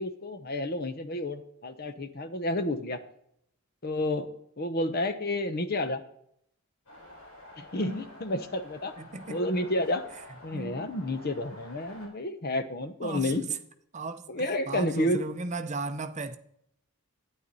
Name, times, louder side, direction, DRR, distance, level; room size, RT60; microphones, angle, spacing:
voice 1, 0.0-3.0 3.8-4.3 4.6-6.0 7.6-8.9 9.3-10.1 10.4-13.4 14.3-15.2, left 1 dB, 45° left, 0.9 m, -30 dB
sound 1, 6.9-12.1, left 1 dB, 75° left, 3.9 m, -49 dB
voice 2, 9.0-9.4 10.5-10.9 13.0-13.6 13.9-16.4, right 3 dB, 30° right, 0.7 m, -36 dB
11.5 x 9.8 x 4.1 m
head